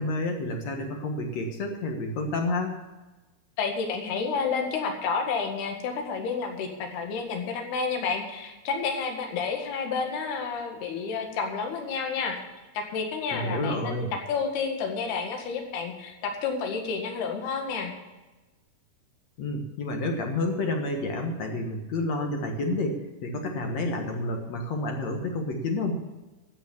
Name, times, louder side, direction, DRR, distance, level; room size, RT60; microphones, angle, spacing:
voice 1, 0.0-2.7 13.3-14.1 19.4-25.9, left 2 dB, 55° left, 3 dB, 2.1 m, -29 dB
voice 2, 3.6-12.4 12.8-17.9, left 5 dB, 80° left, 3 dB, 3.9 m, -30 dB
13.5 x 8.7 x 7.1 m, 1.2 s
omnidirectional pair, 4.5 m